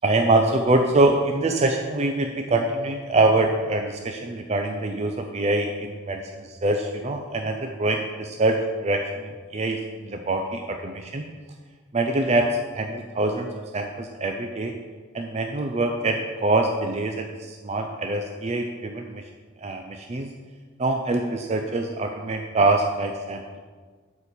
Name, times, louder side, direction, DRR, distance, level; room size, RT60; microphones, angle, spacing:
voice 1, 0.0-8.6 8.8-11.2 11.9-14.7 15.1-19.2 19.6-20.3 20.8-23.6, right 2 dB, 30° right, 3 dB, 0.5 m, -24 dB
8.7 x 4.4 x 6.9 m, 1.5 s
head